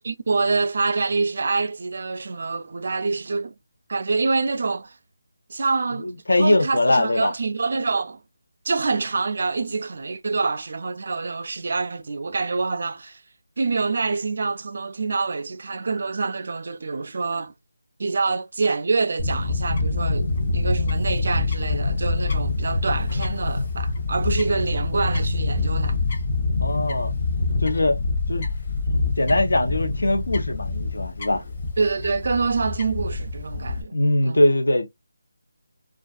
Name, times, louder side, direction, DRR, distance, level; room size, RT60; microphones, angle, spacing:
voice 1, 0.0-3.5 3.9-5.0 5.5-6.1 6.4-8.2 8.6-13.2 13.6-17.5 18.0-26.0 31.8-33.9 34.2-34.4, right 4 dB, 55° right, 0.4 m, -26 dB
voice 2, 6.0-7.3 26.6-27.1 27.6-28.0 28.3-28.5 29.2-31.4 33.9-34.9, left 1 dB, 90° left, 0.8 m, -21 dB
Fowl / Bird, 19.2-33.8, left 3 dB, 40° left, 0.8 m, -25 dB
2.4 x 2.4 x 2.3 m
figure-of-eight pair, 170°, 0 cm